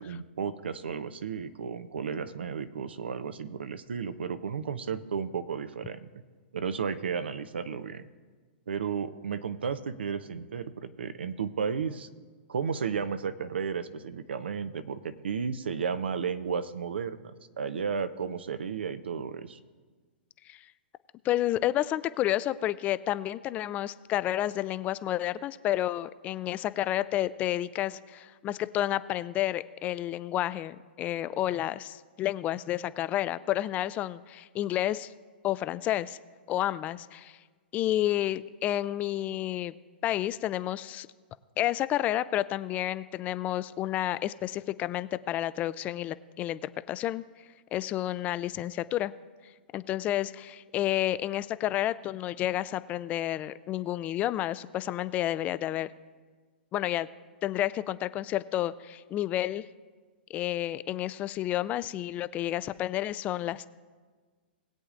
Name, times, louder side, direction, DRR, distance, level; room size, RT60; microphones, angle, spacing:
voice 1, 0.0-6.1 6.5-8.0 8.7-12.1 12.5-19.6, right 6 dB, 80° right, 12 dB, 0.7 m, -33 dB
voice 2, 21.2-35.1 35.4-36.2 36.5-37.4 37.7-39.7 40.0-41.1 41.6-47.2 47.7-49.1 49.7-55.9 56.7-57.1 57.4-59.6 60.3-63.7, left 13 dB, 25° left, 16 dB, 0.3 m, -30 dB
20.5 x 8.2 x 2.5 m, 1.5 s
hypercardioid pair, 125°, 6 cm